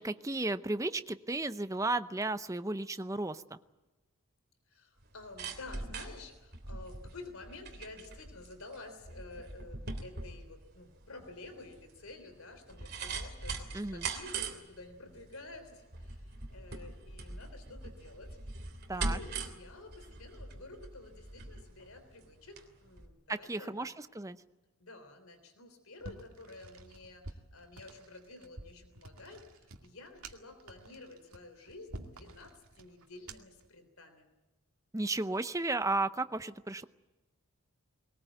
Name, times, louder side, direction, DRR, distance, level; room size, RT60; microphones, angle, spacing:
voice 1, 0.0-3.6 13.7-14.1 18.9-19.2 23.3-24.4 34.9-36.8, right 2 dB, 15° right, 12 dB, 0.7 m, -34 dB
voice 2, 4.7-18.4 18.9-23.9 24.8-34.3, left 2 dB, 75° left, 8 dB, 3.4 m, -51 dB
sound 1, 5.0-22.7 23.0-23.1, right 3 dB, 45° right, 3.1 m, -42 dB
sound 2, 26.0-33.7, right 2 dB, 80° right, 2.2 m, -50 dB
21.5 x 19.5 x 9.2 m, 1.1 s
head